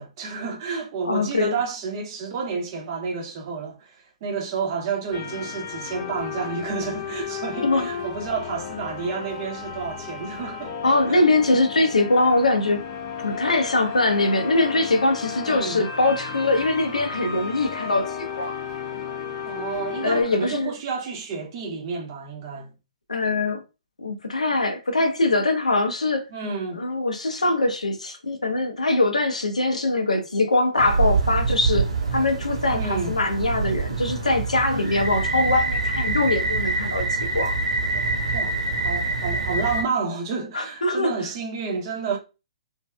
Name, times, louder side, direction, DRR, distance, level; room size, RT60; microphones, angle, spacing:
voice 1, 0.0-10.7 11.1-11.2 15.4-15.8 19.4-22.7 26.3-26.8 32.7-33.2 38.3-38.5 38.8-42.2, right 5 dB, 40° right, 0.8 m, -30 dB
voice 2, 1.0-1.5 7.6-7.9 10.8-12.8 13.2-18.5 20.0-20.7 23.1-23.6 24.0-26.3 26.8-31.9 32.1-37.6 40.5-41.1, left 2 dB, 80° left, 0.7 m, -22 dB
sound 1, 5.1-20.2, left 7 dB, 30° left, 0.8 m, -34 dB
sound 2, 30.8-39.8, right 3 dB, 75° right, 1.1 m, -25 dB
3.1 x 2.6 x 2.3 m
figure-of-eight pair, 125°, 4 cm